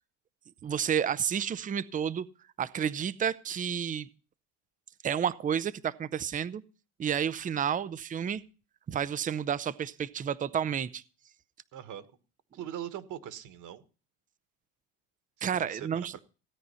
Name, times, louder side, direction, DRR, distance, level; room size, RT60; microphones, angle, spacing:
voice 1, 0.6-2.3 2.6-4.1 5.0-6.6 7.0-8.4 8.9-11.0 15.4-16.1, right 8 dB, 20° right, 0.6 m, -30 dB
voice 2, 11.7-12.1 12.5-13.8 15.4-15.9 16.1-16.2, right 10 dB, 45° right, 1.5 m, -41 dB
17.0 x 9.5 x 5.6 m
cardioid pair, 130°, 41 cm